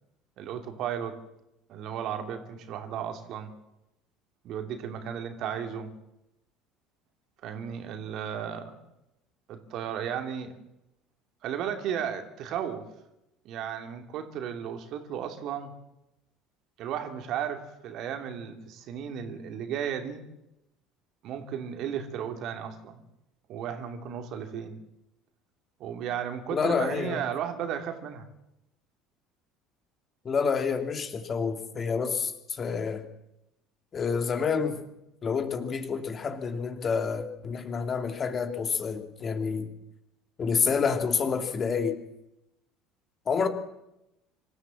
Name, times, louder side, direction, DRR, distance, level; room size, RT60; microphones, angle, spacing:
voice 1, 0.4-1.2 1.7-3.5 4.4-5.9 7.4-8.8 9.5-10.6 11.4-12.9 13.4-15.7 16.8-20.3 21.2-23.0 23.5-24.8 25.8-28.3, right 8 dB, 55° right, 6 dB, 2.7 m, -34 dB
voice 2, 26.5-27.2 30.2-33.1 33.9-34.8 35.2-39.7 40.4-42.0 43.3-43.5, left 5 dB, 35° left, 7 dB, 2.7 m, -28 dB
25.0 x 14.5 x 7.5 m, 0.88 s
figure-of-eight pair, 65°, 0 cm